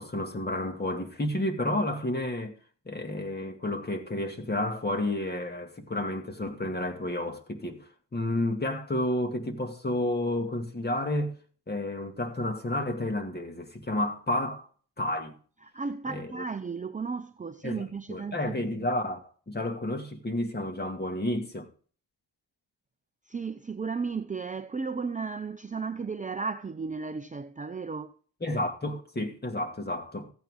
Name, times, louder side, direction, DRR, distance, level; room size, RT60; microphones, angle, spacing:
voice 1, 0.0-2.6 2.9-11.4 11.7-14.7 15.0-15.3 16.1-16.3 17.6-19.2 19.5-21.7 28.4-30.3, left 1 dB, 20° left, 2.2 m, -31 dB
voice 2, 15.6-18.9 23.3-28.1, right 5 dB, 20° right, 0.6 m, -34 dB
15.0 x 9.0 x 3.7 m
cardioid pair, 85°, 43 cm